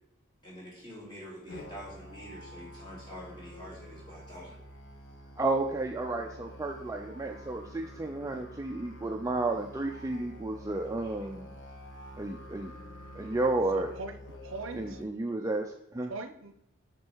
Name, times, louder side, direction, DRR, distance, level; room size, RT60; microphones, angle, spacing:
voice 1, 0.4-4.6 11.0-11.1, equal, 25° left, -6 dB, 2.7 m, -46 dB
Musical instrument, 1.5-15.0, left 1 dB, 65° left, 1.0 m, -48 dB
voice 2, 5.4-11.5 12.2-12.7 13.1-13.9 14.7-16.1, right 2 dB, 15° right, 2 dB, 0.4 m, -32 dB
voice 3, 13.7-15.0 16.1-16.5, right 3 dB, 75° right, 8 dB, 0.6 m, -40 dB
6.4 x 4.5 x 4.5 m, 0.82 s
head